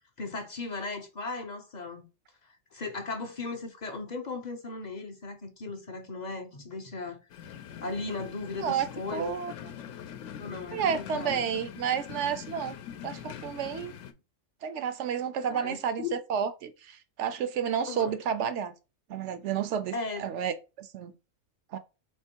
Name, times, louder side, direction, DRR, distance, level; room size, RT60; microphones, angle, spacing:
voice 1, 0.2-2.1 2.4-7.2 7.8-9.3 10.4-11.5 15.5-16.2 17.9-18.1 19.9-20.2, left 3 dB, 45° left, 0.6 m, -37 dB
sound 1, 7.3-14.1, left 9 dB, 70° left, 0.9 m, -43 dB
voice 2, 8.6-9.5 10.7-12.8 13.0-13.9 14.6-18.7 19.1-21.1 21.7-21.8, right 8 dB, 70° right, 0.8 m, -31 dB
3.6 x 3.0 x 4.4 m
omnidirectional pair, 1.4 m